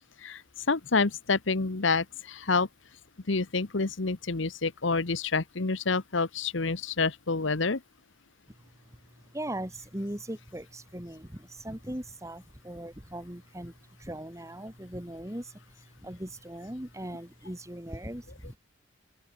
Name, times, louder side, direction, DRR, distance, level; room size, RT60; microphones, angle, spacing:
voice 1, 0.7-2.7 3.3-7.8, left 4 dB, 65° left, 1.1 m, -28 dB
voice 2, 9.3-13.7 14.0-15.6 16.0-18.6, right 1 dB, 15° right, 3.4 m, -39 dB
open air
head